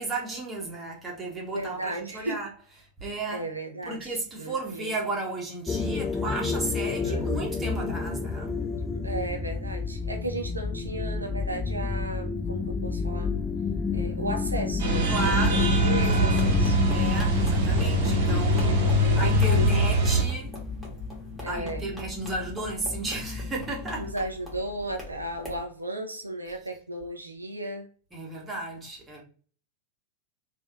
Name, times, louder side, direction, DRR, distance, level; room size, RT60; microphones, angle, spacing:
voice 1, 0.0-2.5 3.0-3.5 3.8-8.6 15.1-15.8 16.9-20.5 21.4-24.1 28.1-29.2, right 2 dB, 15° right, 1.1 m, -33 dB
voice 2, 1.5-2.4 3.3-4.9 7.0-7.3 8.8-13.3 13.9-16.8 18.5-19.7 21.4-21.9 23.9-27.9, right 1 dB, 80° right, 0.4 m, -35 dB
sound 1, 5.7-24.1, left 5 dB, 15° left, 0.4 m, -30 dB
sound 2, 14.8-20.2, right 1 dB, 50° right, 0.8 m, -23 dB
sound 3, 15.9-25.6, left 1 dB, ahead, 1.5 m, -43 dB
3.2 x 2.6 x 2.4 m
figure-of-eight pair, 90°, 0 cm